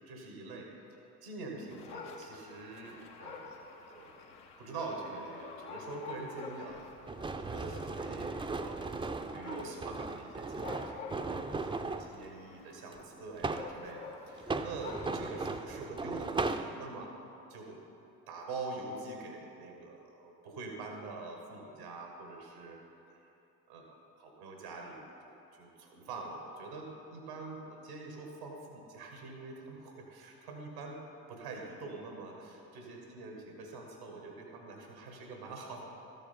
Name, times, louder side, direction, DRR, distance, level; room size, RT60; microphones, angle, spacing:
voice 1, 0.1-4.3 4.6-6.9 7.3-17.1 17.5-17.8 18.3-22.8 23.1-23.2 23.7-31.0 31.3-35.9, right 3 dB, 90° right, 1 dB, 1.2 m, -45 dB
Dog, 1.7-15.5, left 5 dB, 80° left, 1.0 m, -49 dB
sound 1, 7.1-12.1 12.9-13.8 14.4-16.7, right 3 dB, 10° right, 0.4 m, -37 dB
12.5 x 7.2 x 4.2 m, 2.9 s
hypercardioid pair, 50°, 44 cm